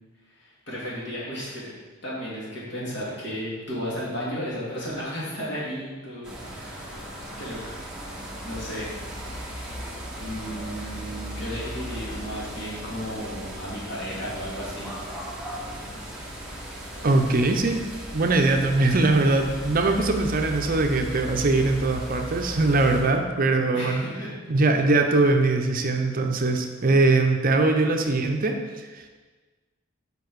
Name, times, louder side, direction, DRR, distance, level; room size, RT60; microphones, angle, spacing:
voice 1, 0.4-1.7 2.0-7.0 7.4-7.8 8.4-8.9 10.2-14.9 23.7-24.3, equal, 60° left, -6 dB, 2.3 m, -34 dB
sound 1, 6.2-23.0, equal, 5° right, 1.1 m, -37 dB
voice 2, 17.0-17.8 18.1-24.0 24.5-28.6 28.9-29.0, right 2 dB, 45° right, 4 dB, 0.6 m, -21 dB
6.9 x 5.2 x 4.7 m, 1.3 s
head